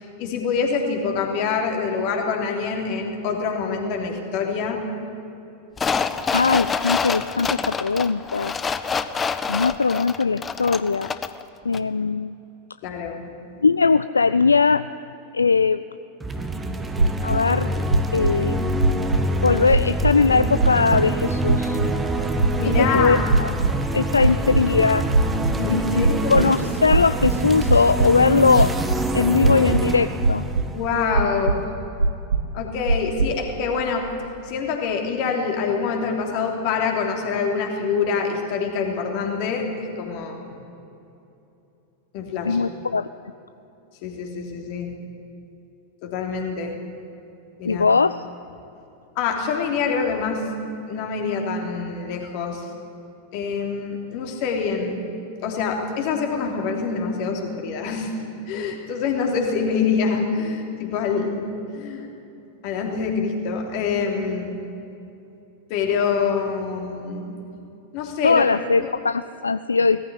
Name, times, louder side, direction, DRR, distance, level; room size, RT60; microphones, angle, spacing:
voice 1, 0.2-4.8 12.8-13.2 22.6-23.3 25.6-26.5 30.7-31.7 32.2-34.1 34.5-40.6 42.1-42.6 44.0-44.9 46.0-46.7 47.6-47.8 49.1-50.4 50.9-52.6 53.3-55.0 55.4-58.1 58.5-61.5 61.7-62.1 62.6-64.6 65.7-67.4 67.9-68.4 68.8-68.9, left 5 dB, 45° left, 2 dB, 3.3 m, -25 dB
sound 1, 5.8-11.4 11.7-11.8, left 5 dB, 20° left, 0.8 m, -26 dB
voice 2, 6.3-8.5 9.5-11.1 11.6-12.3 13.6-14.9 15.3-15.8 17.2-17.7 18.1-18.8 19.4-21.8 22.8-23.5 23.9-25.1 25.7-28.7 29.1-30.4 42.5-43.1 47.6-48.2 68.2-70.0, left 4 dB, 75° left, 14 dB, 0.4 m, -20 dB
sound 2, 16.2-31.6, right 1 dB, 15° right, 1.5 m, -26 dB
sound 3, 17.0-17.4 17.9-18.3 18.8-19.3 19.7-20.1 20.6-21.0 21.5-21.9 22.4-22.8 23.3-23.8 24.2-24.7 25.1-25.6 26.0-26.4 26.9-28.1 28.5-29.0 29.4-29.9 30.2-30.7 31.1-31.6 32.0-32.5 32.9-33.3, right 3 dB, 75° right, 0.9 m, -20 dB
18.5 x 15.0 x 10.0 m, 2.8 s
figure-of-eight pair, 90°, 0 cm